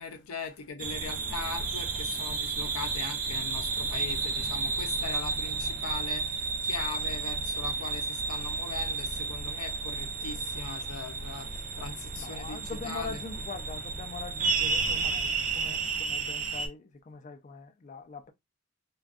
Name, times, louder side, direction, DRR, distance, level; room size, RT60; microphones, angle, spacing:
voice 1, 0.0-13.2, left 4 dB, 85° left, 0.6 m, -40 dB
sound 1, 0.8-16.7, right 4 dB, 35° right, 0.4 m, -32 dB
voice 2, 12.2-18.3, left 4 dB, 35° left, 0.3 m, -42 dB
2.5 x 2.2 x 2.3 m
head